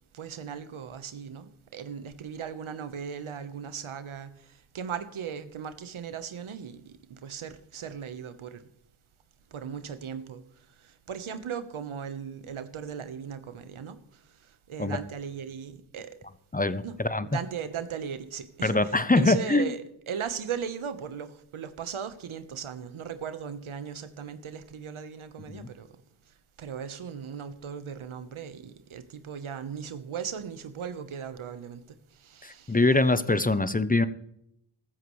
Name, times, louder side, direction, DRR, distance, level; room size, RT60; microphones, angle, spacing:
voice 1, 0.1-8.6 9.5-10.4 10.8-14.0 14.7-16.1 16.8-17.0 17.2-18.8 19.1-25.9 26.6-31.8 32.2-32.8, right 7 dB, 75° right, 1.2 m, -37 dB
voice 2, 16.5-17.3 18.6-19.7 25.5-25.7 32.4-34.1, left 2 dB, 15° left, 0.8 m, -24 dB
15.0 x 13.5 x 3.2 m
cardioid pair, 50°, 49 cm